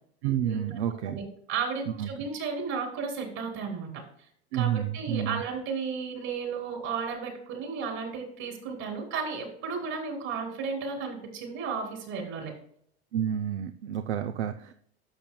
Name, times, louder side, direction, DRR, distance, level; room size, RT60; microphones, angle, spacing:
voice 1, 0.2-1.2 1.9-2.1 4.5-5.4 13.1-14.7, right 9 dB, 80° right, 8 dB, 0.7 m, -30 dB
voice 2, 1.0-4.0 4.5-12.5, right 5 dB, 55° right, 2 dB, 3.6 m, -34 dB
11.5 x 7.1 x 2.3 m, 0.64 s
hypercardioid pair, 90°, 33 cm